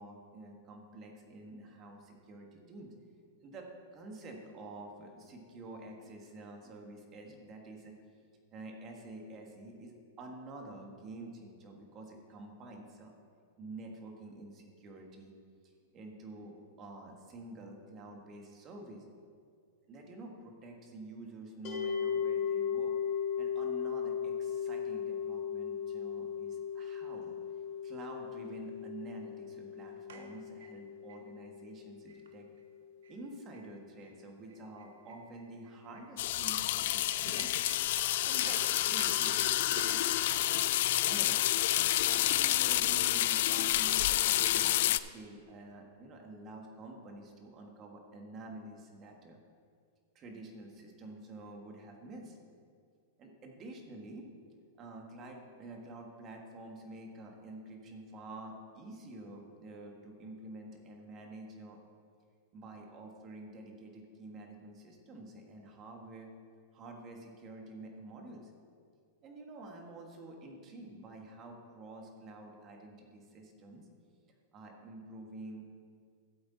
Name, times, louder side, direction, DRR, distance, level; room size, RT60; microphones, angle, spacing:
voice 1, 0.0-2.9 3.4-7.9 8.5-13.1 13.6-15.3 15.9-19.1 19.9-23.0 23.4-27.3 27.8-32.5 33.1-37.5 37.9-40.0 41.0-41.5 42.0-49.4 50.1-52.4 53.2-54.3 54.8-61.8 62.5-66.3 66.7-68.5 69.2-73.9 74.5-75.7, right 2 dB, 30° right, 2 dB, 1.7 m, -48 dB
sound 1, 21.6-32.8, left 7 dB, 45° left, 2.2 m, -37 dB
sound 2, 30.1-31.2 31.6-31.7 32.1-32.3 32.6-32.7 33.0-33.2 33.5-33.7 34.0-34.1 34.5-38.1 38.4-40.7, right 5 dB, 85° right, 1.0 m, -51 dB
sound 3, 36.2-45.0, left 14 dB, 60° left, 0.3 m, -29 dB
12.5 x 7.9 x 4.2 m, 2.2 s
supercardioid pair, 145°, 0 cm